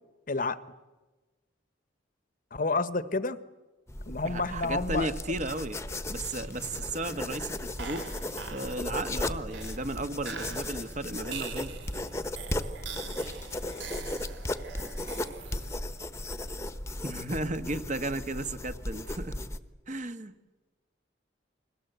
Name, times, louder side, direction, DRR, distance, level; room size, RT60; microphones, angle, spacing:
voice 1, 0.3-0.6 2.5-3.4 4.1-5.1, left 3 dB, 50° left, 14 dB, 1.1 m, -29 dB
sound 1, 3.9-19.6, left 1 dB, 15° left, 1.1 m, -36 dB
voice 2, 4.2-5.8 6.1-8.1 8.5-11.8 17.0-19.4 19.9-20.3, right 2 dB, 40° right, 10 dB, 1.4 m, -34 dB
sound 2, 6.1-16.0, right 5 dB, 80° right, 3.0 m, -44 dB
30.0 x 22.0 x 8.1 m, 1.2 s
head